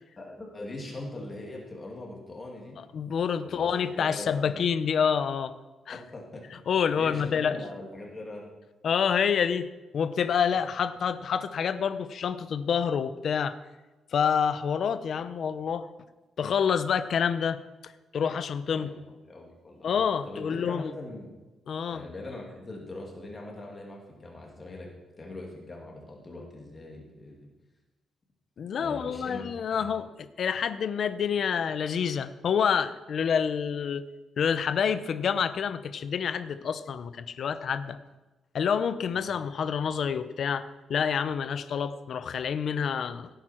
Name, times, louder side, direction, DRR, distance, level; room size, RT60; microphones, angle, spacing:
voice 1, 0.2-2.8 3.4-4.6 5.9-6.4 7.0-8.4 18.7-19.9 20.2-21.3 21.9-24.9 25.2-27.4 28.7-29.9 39.1-39.3, left 2 dB, 25° left, -1 dB, 2.6 m, -41 dB
voice 2, 2.9-5.5 5.9-6.0 6.7-7.6 8.8-9.7 9.9-13.6 14.1-15.9 16.4-18.9 19.8-20.9 21.7-22.0 28.6-30.1 30.4-34.0 34.4-38.0 38.5-43.3, left 7 dB, 50° left, 11 dB, 0.7 m, -28 dB
17.0 x 9.1 x 4.5 m, 1.1 s
cardioid pair, 145°, 0 cm